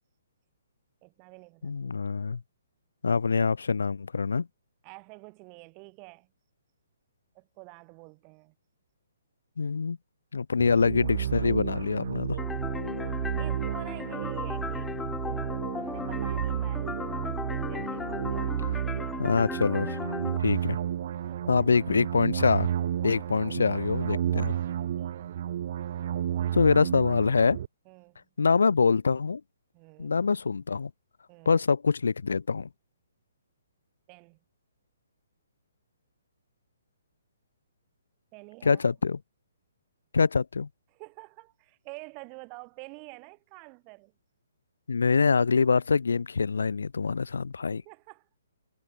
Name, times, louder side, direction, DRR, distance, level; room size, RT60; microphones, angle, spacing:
voice 1, 1.0-2.0 4.8-6.3 7.3-8.5 13.3-15.0 15.3-19.2 21.2-21.9 25.0-25.3 26.4-26.6 27.9-28.3 29.7-30.1 31.3-31.6 34.1-34.4 38.3-38.8 40.9-44.1 47.7-48.3, right 35 dB, 30° right, 7.1 m, -48 dB
voice 2, 1.6-2.4 3.0-4.5 9.6-10.0 10.3-12.4 18.6-18.8 19.2-20.0 20.4-20.8 21.5-22.7 23.0-24.5 26.5-27.6 28.4-29.4 30.0-30.9 31.4-32.7 38.6-39.2 40.1-40.7 44.9-47.8, left 5 dB, 80° left, 3.5 m, -25 dB
sound 1, 10.6-27.7, right 10 dB, 50° right, 3.8 m, -32 dB
sound 2, 12.4-20.4, left 5 dB, 10° left, 0.6 m, -36 dB
hypercardioid pair, 140°, 0 cm